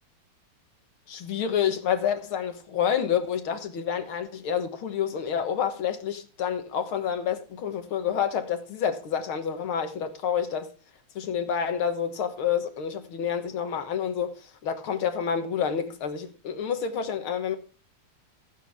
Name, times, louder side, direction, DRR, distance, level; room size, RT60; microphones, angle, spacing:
voice 1, 1.1-10.7 11.2-14.4 14.6-17.6, left 8 dB, 75° left, 2.1 m, -28 dB
15.0 x 8.9 x 3.4 m
omnidirectional pair, 2.3 m